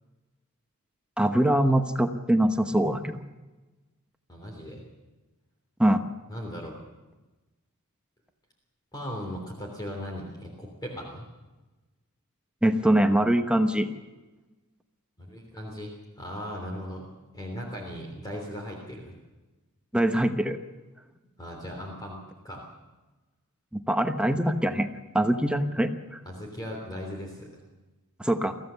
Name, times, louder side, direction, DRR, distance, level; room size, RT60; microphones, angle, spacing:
voice 1, 1.2-3.2 5.8-6.1 12.6-13.9 19.9-20.6 23.7-24.9 25.1-26.2 28.2-28.5, right 1 dB, 5° right, 6 dB, 1.0 m, -23 dB
voice 2, 4.3-4.8 6.3-6.8 8.9-11.3 15.2-17.1 17.3-19.1 21.4-22.7 26.3-27.5, equal, 20° left, 0 dB, 3.3 m, -38 dB
24.0 x 15.5 x 7.0 m, 1.2 s
head